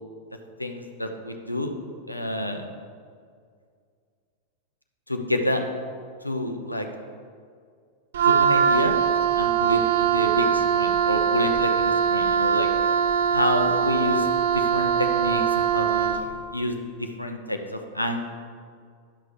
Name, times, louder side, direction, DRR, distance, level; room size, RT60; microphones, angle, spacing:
voice 1, 0.6-1.8 2.1-2.7 5.1-5.6 6.2-6.9 8.2-8.9 9.4-12.7 13.3-14.3 14.5-16.2 16.5-18.2, left 1 dB, 85° left, 5 dB, 0.8 m, -28 dB
Wind instrument woodwind instrument, 8.1-16.3, right 7 dB, 60° right, 0.6 m, -22 dB
11.5 x 5.8 x 5.1 m, 2.1 s
figure-of-eight pair, 90°, 0 cm